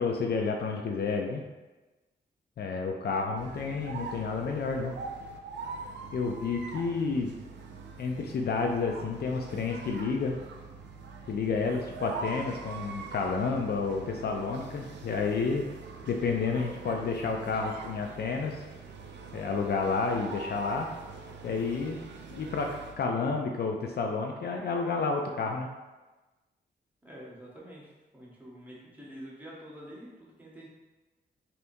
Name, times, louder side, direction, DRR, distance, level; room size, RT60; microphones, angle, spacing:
voice 1, 0.0-1.4 2.6-4.9 6.1-7.3 8.0-10.4 11.3-15.7 16.1-18.7 19.3-20.9 21.4-22.0 22.3-22.7 23.0-25.7, left 4 dB, 65° left, 2 dB, 0.4 m, -30 dB
sound 1, 3.4-23.0, right 4 dB, 80° right, 0.4 m, -43 dB
voice 2, 27.0-30.7, equal, 10° right, -6 dB, 1.1 m, -47 dB
3.3 x 2.8 x 2.6 m, 1.2 s
cardioid pair, 75°, 18 cm